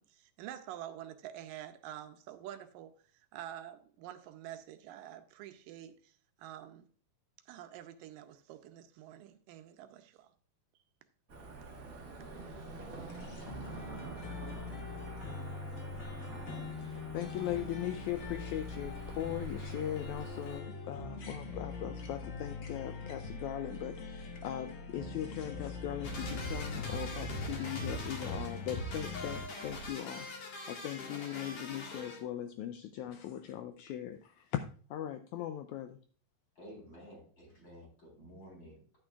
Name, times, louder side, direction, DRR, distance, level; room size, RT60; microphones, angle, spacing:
voice 1, 0.0-2.9 3.3-6.1 6.4-6.9 7.5-10.3, right 11 dB, 85° right, 2.4 m, -47 dB
Cricket / Motor vehicle (road), 11.3-20.6, right 3 dB, 35° right, 1.4 m, -47 dB
sound 1, 13.1-29.4, left 3 dB, 70° left, 1.1 m, -43 dB
voice 2, 17.1-34.6 34.9-36.0, left 11 dB, 85° left, 1.7 m, -39 dB
Beep-Boop, 26.0-32.2, left 1 dB, 50° left, 2.4 m, -41 dB
voice 3, 36.6-39.0, equal, 35° left, 4.7 m, -52 dB
11.5 x 8.9 x 2.4 m
omnidirectional pair, 3.9 m